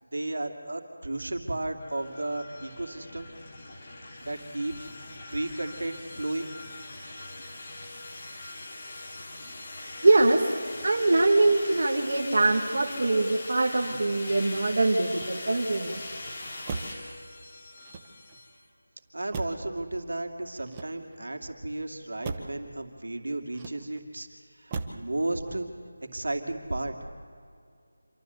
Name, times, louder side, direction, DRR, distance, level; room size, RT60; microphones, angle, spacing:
voice 1, 0.1-3.3 4.2-4.9 5.3-6.5 19.1-24.3 24.6-25.7 26.1-26.9, right 2 dB, 80° right, 4 dB, 2.6 m, -33 dB
sound 1, 1.8-18.6, left 2 dB, 20° left, 2.2 m, -41 dB
voice 2, 10.0-10.4 10.8-16.0, right 2 dB, 50° right, 0 dB, 1.7 m, -23 dB
Motor vehicle (road), 15.0-15.8 16.6-17.1 17.8-18.5 19.3-19.8 20.6-21.3 22.2-22.6 23.5-24.1 24.7-25.1 25.5-25.9, right 4 dB, 15° right, 0.8 m, -38 dB
26.5 x 13.0 x 8.1 m, 2.3 s
figure-of-eight pair, 175°, 0 cm